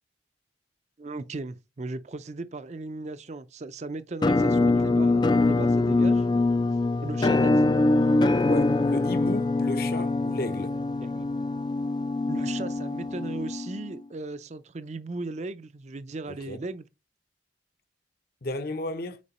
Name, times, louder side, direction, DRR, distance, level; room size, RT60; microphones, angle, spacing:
voice 1, 1.0-6.3 7.0-7.7 11.0-11.3 12.3-16.9, right 3 dB, 35° right, 0.5 m, -37 dB
Musical instrument, 4.2-14.0, left 2 dB, 25° left, 0.3 m, -24 dB
voice 2, 8.4-10.8 16.3-16.6 18.4-19.2, left 2 dB, 55° left, 0.8 m, -34 dB
8.4 x 4.4 x 4.1 m
head